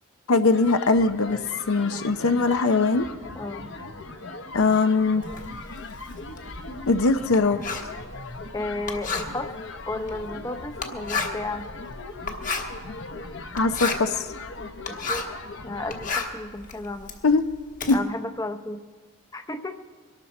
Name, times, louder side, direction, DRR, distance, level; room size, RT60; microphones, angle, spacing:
voice 1, 0.3-1.4 1.7-3.1 4.5-5.2 6.9-7.6 13.5-14.3 17.2-17.4 17.9-18.0, left 3 dB, 80° left, 9 dB, 0.7 m, -21 dB
sound 1, 0.5-16.2, left 3 dB, 60° left, 1.0 m, -39 dB
voice 2, 3.4-3.7 8.5-9.5 9.9-11.7 14.9-15.3 15.6-17.1 17.9-18.8 19.3-19.8, left 2 dB, 15° left, 9 dB, 0.7 m, -33 dB
Writing, 5.2-15.4 15.8-18.0, left 4 dB, 40° left, 1.2 m, -33 dB
23.5 x 12.5 x 4.3 m, 1.5 s
head